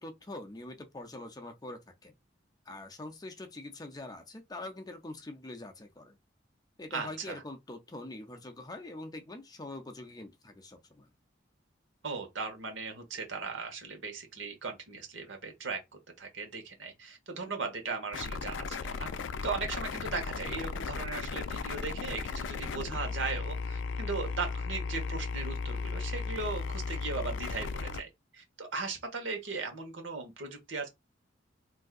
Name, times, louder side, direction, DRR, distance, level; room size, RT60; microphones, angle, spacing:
voice 1, 0.0-2.1 2.7-6.2 6.8-11.1 22.7-23.0, left 2 dB, 20° left, 0.5 m, -44 dB
voice 2, 6.9-7.4 12.0-15.8 16.2-19.1 19.4-30.9, right 4 dB, 85° right, 1.1 m, -38 dB
sound 1, 18.1-28.0, left 4 dB, 75° left, 0.4 m, -36 dB
3.5 x 2.6 x 2.4 m
head